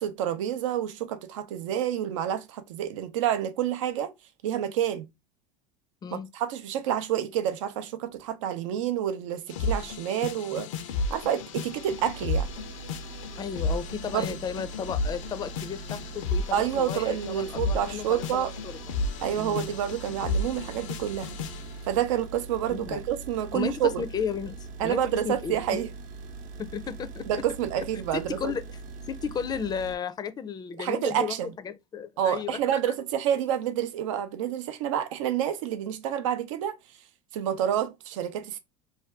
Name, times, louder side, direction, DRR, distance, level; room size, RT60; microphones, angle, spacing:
voice 1, 0.0-4.1 4.4-5.1 6.1-12.5 14.1-14.4 16.5-18.5 19.2-21.4 21.9-24.0 24.8-25.9 27.3-28.5 30.8-31.5 32.2-36.7 37.3-38.6, right 10 dB, 85° right, 0.5 m, -28 dB
sound 1, 9.5-21.8, left 3 dB, 85° left, 0.5 m, -33 dB
sound 2, 11.5-29.9, right 4 dB, 55° right, 0.7 m, -42 dB
voice 2, 13.4-18.8 19.3-19.7 22.7-23.0 23.5-25.6 26.6-27.5 27.8-27.9 28.1-28.6 29.1-32.8, left 7 dB, 25° left, 0.4 m, -34 dB
2.6 x 2.2 x 3.3 m
supercardioid pair, 105°, 16 cm